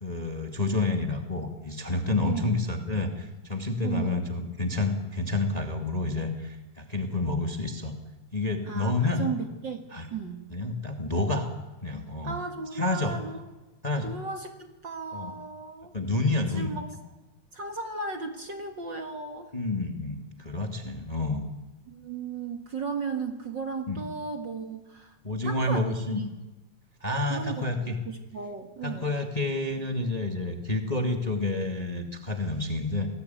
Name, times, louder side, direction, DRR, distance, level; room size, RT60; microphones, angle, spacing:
voice 1, 0.0-7.9 8.3-9.2 9.9-10.1 10.5-11.5 11.8-12.4 12.7-13.1 13.8-14.1 15.1-15.3 15.9-16.7 19.5-21.4 23.9-24.0 25.2-26.2 27.0-28.0 28.8-33.1, left 2 dB, 15° left, 4 dB, 1.9 m, -29 dB
voice 2, 2.2-2.6 3.8-4.3 8.7-9.9 10.1-10.5 12.2-13.5 14.0-15.9 16.5-16.9 17.5-19.5 21.9-25.2 25.4-26.3 27.3-29.1, right 5 dB, 45° right, 5 dB, 2.1 m, -35 dB
26.5 x 19.0 x 9.4 m, 1.1 s
omnidirectional pair, 3.3 m